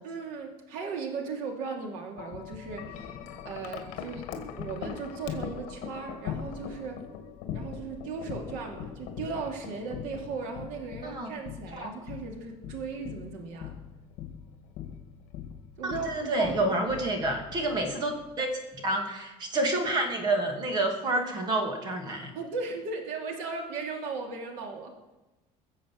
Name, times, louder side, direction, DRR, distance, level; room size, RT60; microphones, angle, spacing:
voice 1, 0.0-3.2 3.4-4.2 4.6-7.0 7.5-13.7 15.8-16.8 22.3-24.9, right 4 dB, 85° right, 2 dB, 3.0 m, -37 dB
Wind chime, 2.2-18.4, left 8 dB, 60° left, 2.1 m, -41 dB
voice 2, 15.8-18.5 18.8-22.3, right 2 dB, 30° right, 4 dB, 2.7 m, -29 dB
21.5 x 7.4 x 7.7 m, 1.1 s
cardioid pair, 175°, 13 cm